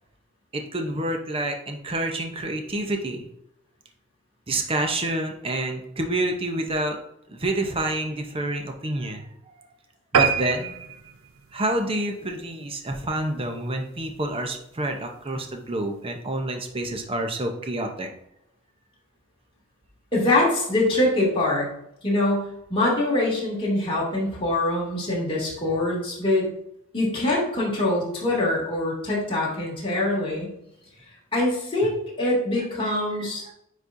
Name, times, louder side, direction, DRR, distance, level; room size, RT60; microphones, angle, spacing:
voice 1, 0.5-3.3 4.5-7.0 7.3-9.5 10.1-10.7 11.5-18.1 32.8-32.9 33.5-33.6, right 1 dB, 25° right, 3 dB, 0.8 m, -28 dB
sound 1, 10.1-12.9 13.4-13.6 14.0-14.1 14.4-14.5 14.7-14.8, right 6 dB, 90° right, 0.6 m, -26 dB
voice 2, 20.1-21.7 22.0-26.5 26.9-30.5 31.3-33.4, left 1 dB, 25° left, -5 dB, 2.4 m, -24 dB
9.5 x 4.2 x 2.6 m, 0.78 s
head